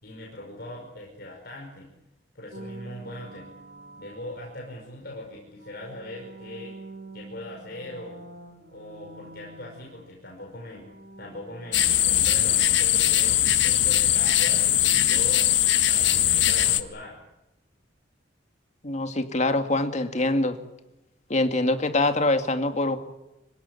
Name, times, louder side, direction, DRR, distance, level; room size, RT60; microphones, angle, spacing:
voice 1, 0.0-1.9 2.3-3.5 4.0-6.8 7.1-8.2 8.7-10.9 11.2-13.4 13.6-15.5 15.8-17.2, left 1 dB, 55° left, -1 dB, 5.5 m, -40 dB
sound 1, 2.5-5.0 5.5-10.4 10.7-15.6, right 2 dB, 65° right, 3.6 m, -47 dB
sound 2, 11.7-16.8, left 12 dB, 75° left, 1.5 m, -21 dB
voice 2, 18.8-20.6 21.3-23.0, left 2 dB, 40° left, 7 dB, 2.2 m, -24 dB
26.0 x 16.5 x 9.9 m, 0.94 s
head